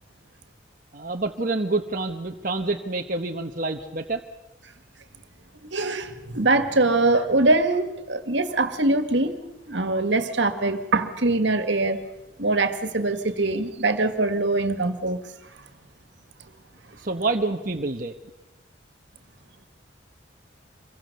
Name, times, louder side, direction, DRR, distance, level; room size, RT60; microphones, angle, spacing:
voice 1, 0.9-4.2 17.0-18.2, right 3 dB, 45° right, 2 dB, 1.2 m, -27 dB
voice 2, 5.7-9.4 9.7-12.0 12.4-15.2, right 2 dB, 70° right, 9 dB, 2.0 m, -23 dB
26.0 x 22.5 x 6.8 m, 1.0 s
head